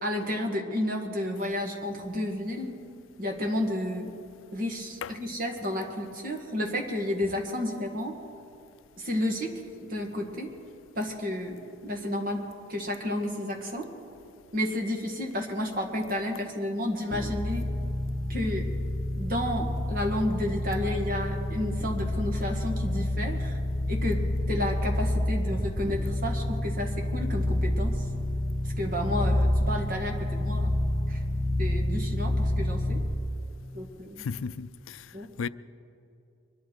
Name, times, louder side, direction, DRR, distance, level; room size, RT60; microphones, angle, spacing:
voice 1, 0.0-2.7 3.2-4.1 4.5-8.1 9.0-9.5 9.8-10.5 11.0-12.4 12.7-13.9 14.5-17.7 18.3-18.6 19.1-23.6 23.9-24.2 24.5-28.1 28.8-30.7 31.1-31.2 31.6-33.0 33.7-34.3 35.1-35.3, left 1 dB, 45° right, 1.8 m, -31 dB
sound 1, 17.1-33.3, left 1 dB, 5° left, 1.2 m, -28 dB
voice 2, 34.2-35.0 35.4-35.5, left 5 dB, 80° left, 0.4 m, -34 dB
23.5 x 11.5 x 4.7 m
head